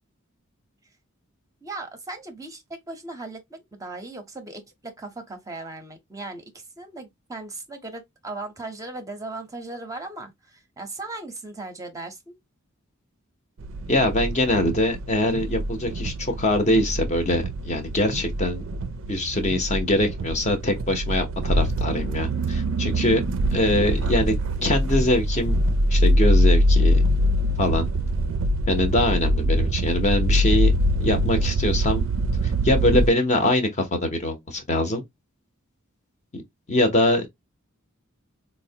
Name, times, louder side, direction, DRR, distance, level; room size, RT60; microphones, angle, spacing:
voice 1, 1.6-12.4, right 2 dB, 15° right, 0.6 m, -37 dB
sound 1, 13.6-33.1, equal, 65° right, 0.4 m, -23 dB
voice 2, 13.9-18.6 19.1-23.2 23.5-24.4 24.6-25.6 25.9-27.0 27.6-27.9 28.7-30.7 31.0-32.1 32.4-35.1 36.3-36.4 36.7-37.3, left 1 dB, 35° left, 0.7 m, -23 dB
4.3 x 2.1 x 2.7 m
head